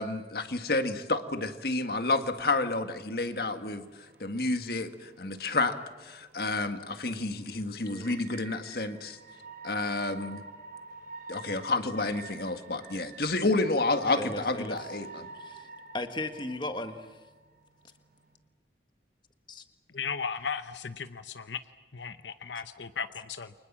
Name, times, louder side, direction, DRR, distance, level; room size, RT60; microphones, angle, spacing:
voice 1, 0.0-3.8 4.2-5.7 6.0-9.2 9.6-10.4 11.3-15.3, left 2 dB, 55° left, 8 dB, 1.8 m, -30 dB
sound 1, 2.4-18.3, right 3 dB, 50° right, 4.8 m, -49 dB
voice 2, 14.2-14.8 15.4-15.7 15.9-17.1 19.5-19.6, left 2 dB, 25° left, 8 dB, 1.6 m, -36 dB
voice 3, 19.9-21.6 21.9-23.5, left 6 dB, 75° left, 10 dB, 0.8 m, -36 dB
29.5 x 24.5 x 7.4 m, 1.2 s
head